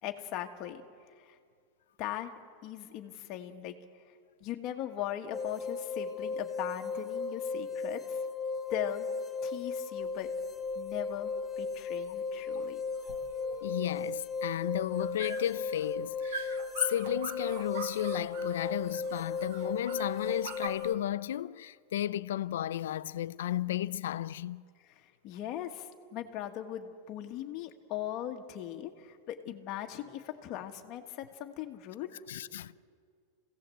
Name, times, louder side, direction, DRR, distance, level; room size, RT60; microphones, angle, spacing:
voice 1, 0.0-0.8 1.2-1.4 2.0-2.3 2.6-3.7 4.4-8.2 8.7-9.1 9.4-10.3 10.7-12.8 24.9-32.1, left 11 dB, 35° left, 1.5 m, -39 dB
sound 1, 5.3-20.9, left 4 dB, 10° left, 0.8 m, -36 dB
sound 2, 10.0-20.7, right 5 dB, 50° right, 1.7 m, -45 dB
voice 2, 13.6-24.6 32.3-32.7, left 12 dB, 90° left, 0.5 m, -33 dB
26.5 x 17.0 x 7.7 m
supercardioid pair, 170°, 0 cm